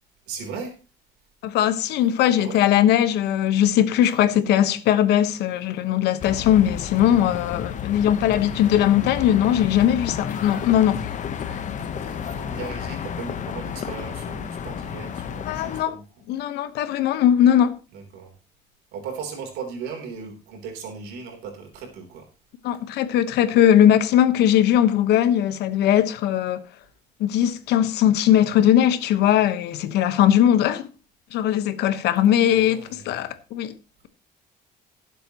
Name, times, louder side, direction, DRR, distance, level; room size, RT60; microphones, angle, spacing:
voice 1, 0.3-0.8 2.4-2.6 11.5-16.0 17.9-18.3 18.9-22.3 22.7-22.8 32.5-33.3, right 5 dB, 90° right, 3.4 m, -37 dB
voice 2, 1.4-11.0 15.5-15.9 16.3-17.7 22.6-26.6 27.2-30.9 31.3-33.7, left 11 dB, 80° left, 1.2 m, -19 dB
sound 1, 6.2-15.8, left 8 dB, 45° left, 1.0 m, -32 dB
sound 2, 10.3-13.3, left 7 dB, 60° left, 2.1 m, -43 dB
18.0 x 7.7 x 3.0 m
cardioid pair, 110°, 17 cm